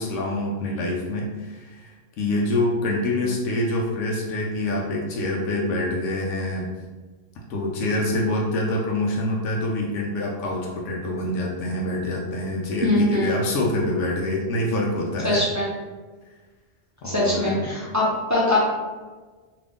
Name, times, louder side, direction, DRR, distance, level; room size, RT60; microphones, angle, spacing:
voice 1, 0.0-6.7 7.5-15.4 17.0-17.5, left 1 dB, 90° left, -2 dB, 0.9 m, -26 dB
voice 2, 12.8-13.3 15.2-15.6 17.0-18.0 18.3-18.6, left 1 dB, 20° right, -7 dB, 0.5 m, -22 dB
2.7 x 2.5 x 3.4 m, 1.3 s
omnidirectional pair, 1.2 m